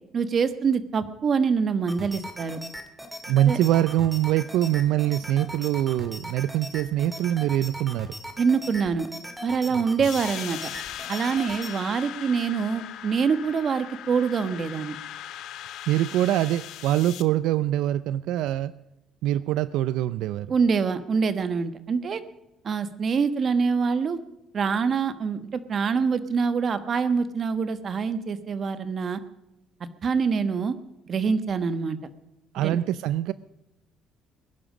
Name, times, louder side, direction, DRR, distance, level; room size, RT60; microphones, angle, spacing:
voice 1, 0.1-2.6 3.5-3.6 8.4-9.1 9.4-10.7 11.1-14.9 20.5-22.2 22.6-24.2 24.5-29.2 30.0-30.8 31.1-32.0 32.6-32.8, right 5 dB, 40° right, 11 dB, 1.2 m, -25 dB
sound 1, 1.9-11.7, equal, 5° right, 2.2 m, -39 dB
voice 2, 3.3-8.1 9.7-9.8 15.9-18.7 19.2-20.5 32.5-33.3, right 13 dB, 80° right, 16 dB, 0.5 m, -24 dB
sound 2, 10.0-17.2, left 11 dB, 75° left, 1.0 m, -39 dB
21.5 x 11.0 x 5.0 m, 0.91 s
cardioid pair, 130°, 0 cm